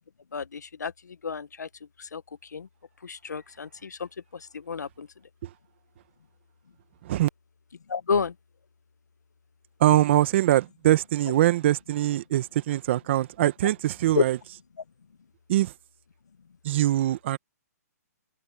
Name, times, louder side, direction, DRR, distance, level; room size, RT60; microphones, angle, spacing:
voice 1, 0.3-0.9 1.2-1.7 2.1-2.2 2.5-2.7 3.0-4.1 4.7-5.1 7.9-8.3 14.1-14.2, left 5 dB, 90° left, 1.1 m, -29 dB
voice 2, 9.8-14.4 15.5-15.7 16.6-17.4, right 14 dB, 45° right, 1.5 m, -23 dB
hypercardioid pair, 150°, 9 cm